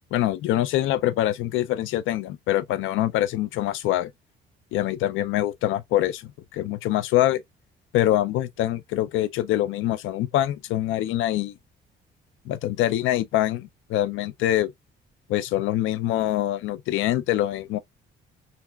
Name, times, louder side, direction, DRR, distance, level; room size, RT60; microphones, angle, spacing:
voice 1, 0.1-4.1 4.7-7.4 7.9-11.6 12.5-14.7 15.3-17.8, left 13 dB, 90° left, 0.4 m, -24 dB
3.3 x 2.9 x 2.3 m
cardioid pair, 90°, 20 cm